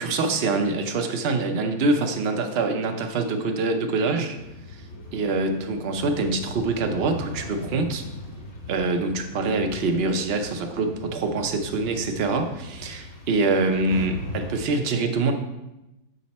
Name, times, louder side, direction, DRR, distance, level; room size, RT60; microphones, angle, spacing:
voice 1, 0.0-4.4 5.1-8.0 8.7-15.3, right 3 dB, 55° right, 5 dB, 0.7 m, -25 dB
sound 1, 4.4-14.7, left 2 dB, 45° left, 1.4 m, -39 dB
6.7 x 5.2 x 4.2 m, 0.96 s
omnidirectional pair, 1.8 m